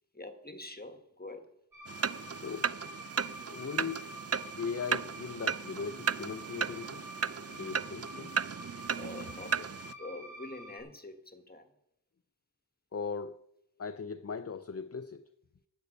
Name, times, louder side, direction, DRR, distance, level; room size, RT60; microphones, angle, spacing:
voice 1, 0.1-1.5 8.9-11.8, left 2 dB, 25° left, 1.4 m, -46 dB
sound 1, 1.7-10.8, equal, 60° right, 3.6 m, -48 dB
sound 2, 1.9-9.9, right 6 dB, 40° right, 0.4 m, -35 dB
voice 2, 2.3-2.8 3.5-4.0 4.6-7.1 7.5-8.3 12.9-13.4 13.8-15.3, left 5 dB, 40° left, 0.5 m, -39 dB
11.5 x 6.7 x 8.1 m
wide cardioid pair, 45°, 40 cm